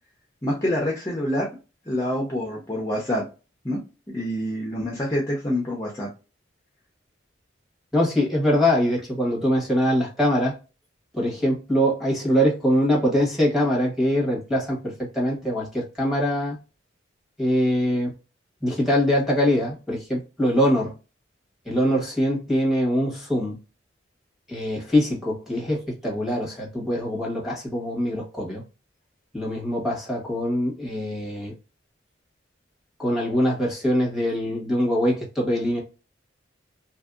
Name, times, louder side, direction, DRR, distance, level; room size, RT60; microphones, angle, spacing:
voice 1, 0.4-1.5 1.9-3.3 3.6-3.8 4.1-6.1, left 1 dB, 15° left, 0.6 m, -26 dB
voice 2, 7.9-10.5 11.1-16.6 17.4-18.1 18.6-20.9 21.7-23.6 24.5-28.6 29.3-31.5 33.0-35.8, equal, ahead, 1.2 m, -23 dB
2.9 x 2.7 x 2.3 m
head